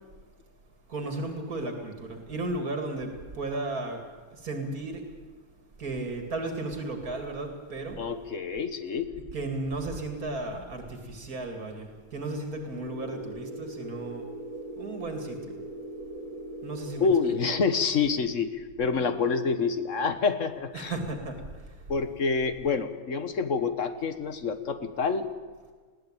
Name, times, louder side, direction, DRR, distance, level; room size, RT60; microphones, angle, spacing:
voice 1, 0.9-5.1 5.8-8.0 9.1-14.3 14.8-15.6 16.6-17.3 20.7-21.7, right 2 dB, 85° right, 3 dB, 2.8 m, -35 dB
voice 2, 8.0-9.1 17.0-20.9 21.9-25.3, left 5 dB, 60° left, 9 dB, 1.7 m, -27 dB
sound 1, 12.7-17.7, right 1 dB, 70° right, 2.7 m, -40 dB
20.5 x 16.0 x 8.9 m, 1.4 s
omnidirectional pair, 1.5 m